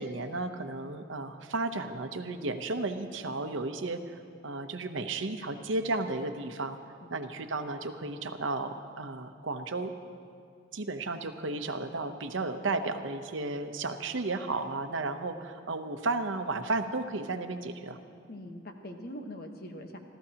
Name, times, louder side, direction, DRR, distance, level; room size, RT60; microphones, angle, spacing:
voice 1, 0.0-4.2 4.4-6.8 7.1-9.9 10.7-18.0, right 3 dB, 80° right, 7 dB, 0.8 m, -33 dB
voice 2, 18.3-20.0, equal, 55° left, 4 dB, 1.2 m, -42 dB
27.0 x 14.0 x 2.9 m, 2.3 s
head